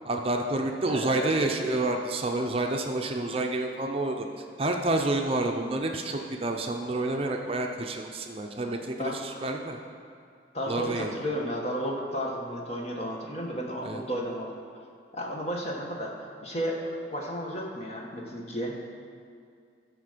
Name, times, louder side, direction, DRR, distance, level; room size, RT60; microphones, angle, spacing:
voice 1, 0.0-4.3 4.6-9.8 10.7-11.1 13.8-14.0, right 2 dB, 30° right, 2 dB, 0.6 m, -29 dB
voice 2, 0.9-2.0 9.0-9.2 10.5-14.5 15.1-16.1 16.4-18.8, equal, 35° left, -1 dB, 1.4 m, -33 dB
13.5 x 5.1 x 6.7 m, 2.3 s
head